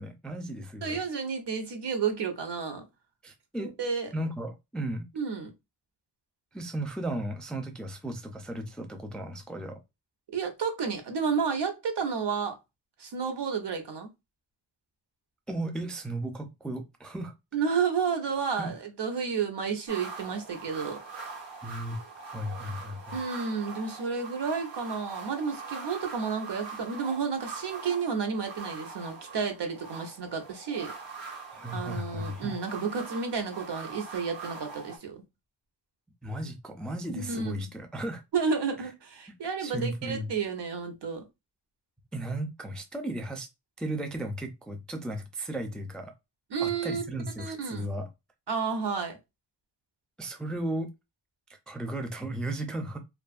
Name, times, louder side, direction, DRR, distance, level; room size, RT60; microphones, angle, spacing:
voice 1, 0.0-1.0 3.2-3.7 4.1-5.1 6.5-9.8 15.5-17.3 18.6-18.7 21.6-22.0 22.3-23.2 31.5-32.5 36.2-38.2 39.6-40.3 42.1-43.5 43.8-46.1 46.6-48.1 50.2-50.9 51.7-53.0, right 1 dB, ahead, 0.4 m, -35 dB
voice 2, 0.8-2.8 3.6-4.1 5.2-5.5 10.3-12.6 13.0-14.1 17.5-21.0 23.1-30.9 31.7-35.2 37.1-37.7 38.3-41.2 46.5-47.0 47.4-47.9 48.5-49.2, right 5 dB, 65° right, 0.9 m, -31 dB
sound 1, 19.9-35.0, right 5 dB, 85° right, 1.3 m, -42 dB
2.5 x 2.4 x 2.4 m
wide cardioid pair, 85°, 45 cm